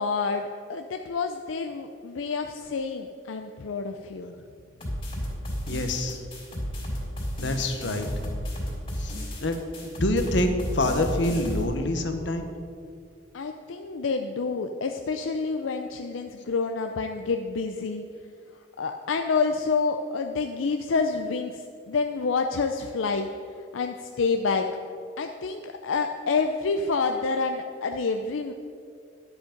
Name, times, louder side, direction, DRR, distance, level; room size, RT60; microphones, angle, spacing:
voice 1, 0.0-4.3 13.3-18.0 18.8-23.3 23.7-24.7 25.2-28.5, left 4 dB, 85° left, 5 dB, 0.5 m, -28 dB
sound 1, 4.8-11.6, equal, 30° left, 2.9 m, -33 dB
voice 2, 5.7-6.2 7.4-8.1 9.0-9.1 9.4-9.6 9.8-12.4, left 1 dB, 65° left, 6 dB, 1.1 m, -26 dB
11.5 x 8.1 x 5.2 m, 2.3 s
head